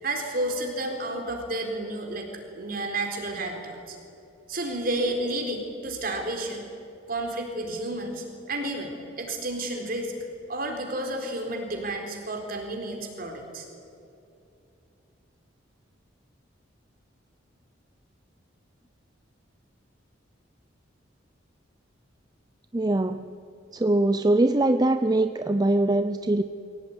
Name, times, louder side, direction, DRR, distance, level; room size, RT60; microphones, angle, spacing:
voice 1, 0.0-2.3 2.5-4.0 4.5-6.7 7.1-10.1 10.5-13.7, right 1 dB, 50° right, 3 dB, 4.1 m, -31 dB
voice 2, 22.7-23.3 23.7-26.4, right 2 dB, 20° right, 10 dB, 0.5 m, -22 dB
23.0 x 17.5 x 9.7 m, 2.8 s
head